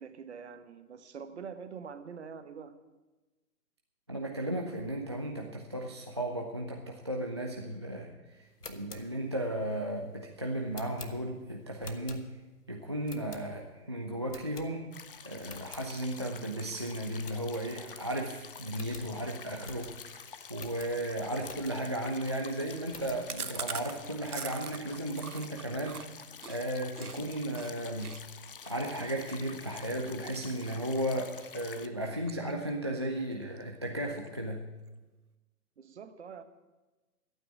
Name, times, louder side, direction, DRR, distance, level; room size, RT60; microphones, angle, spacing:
voice 1, 0.0-2.8 35.8-36.4, right 6 dB, 45° right, 10 dB, 1.2 m, -45 dB
voice 2, 4.1-12.3 12.7-14.9 15.2-28.2 28.7-34.7, right 1 dB, 20° right, 0 dB, 0.4 m, -35 dB
sound 1, 8.4-12.6 13.0-13.8 14.3-15.1 15.4-15.9 16.3-16.4 16.7-16.8 17.2-18.1 18.4-18.5 18.7-22.0 22.5-23.3, left 3 dB, 80° left, 1.5 m, -50 dB
sound 2, 14.9-31.9, left 6 dB, 35° left, 0.6 m, -49 dB
Chewing mastication, 23.3-27.2 27.5-27.7 28.0-31.0 31.4-31.7 32.0-32.9 33.2-33.3 33.6-33.7 34.0-34.5, right 6 dB, 70° right, 1.0 m, -43 dB
12.5 x 9.0 x 8.2 m, 1.2 s
figure-of-eight pair, 130°, 46 cm